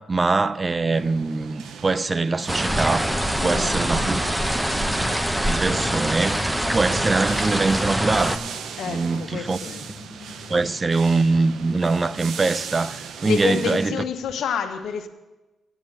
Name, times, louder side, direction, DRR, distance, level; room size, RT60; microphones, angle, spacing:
voice 1, 0.0-3.1 3.4-4.2 4.7-5.1 5.5-8.4 8.9-9.6 10.5-13.9, right 3 dB, 35° right, 0.6 m, -23 dB
sound 1, 0.9-13.9, right 7 dB, 75° right, 0.8 m, -39 dB
sound 2, 2.5-8.4, right 1 dB, 10° right, 0.9 m, -24 dB
sound 3, 2.7-10.7, left 3 dB, 30° left, 1.1 m, -41 dB
voice 2, 3.4-4.3 8.8-9.8 13.2-15.1, left 6 dB, 75° left, 1.0 m, -29 dB
9.2 x 7.2 x 9.0 m
supercardioid pair, 55°, 0 cm